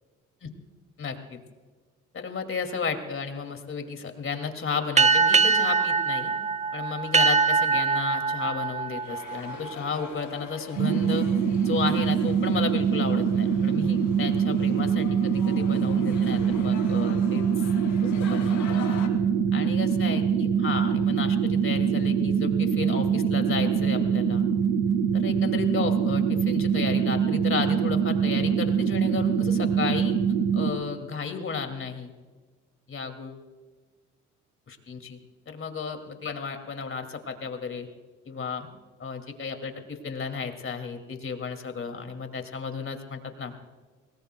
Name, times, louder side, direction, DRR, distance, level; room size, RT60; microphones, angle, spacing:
voice 1, 1.0-1.4 2.1-6.3 6.7-11.3 11.6-17.7 18.0-18.8 19.5-24.4 25.1-30.2 30.5-32.1 32.9-33.4 34.7-35.2 35.5-37.9 38.3-38.7 39.0-43.5, left 5 dB, 45° left, 6 dB, 2.5 m, -33 dB
sound 1, 5.0-10.0, right 5 dB, 25° right, 0.5 m, -23 dB
sound 2, 8.9-19.1, left 6 dB, 75° left, 3.1 m, -44 dB
sound 3, 10.8-30.7, right 7 dB, 80° right, 1.5 m, -24 dB
26.5 x 20.0 x 2.3 m, 1.4 s
cardioid pair, 90°, 30 cm